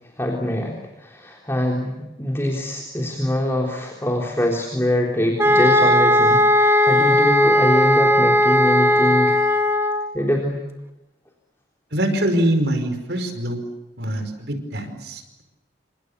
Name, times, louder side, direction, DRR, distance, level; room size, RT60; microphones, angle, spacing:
voice 1, 0.2-9.5 10.1-10.6, left 1 dB, 15° left, 0 dB, 3.7 m, -24 dB
sound 1, 5.4-10.1, left 1 dB, 15° right, 2.1 m, -17 dB
voice 2, 11.9-13.7 14.0-15.4, right 1 dB, 70° right, 8 dB, 5.1 m, -24 dB
28.5 x 27.0 x 6.9 m, 0.99 s
head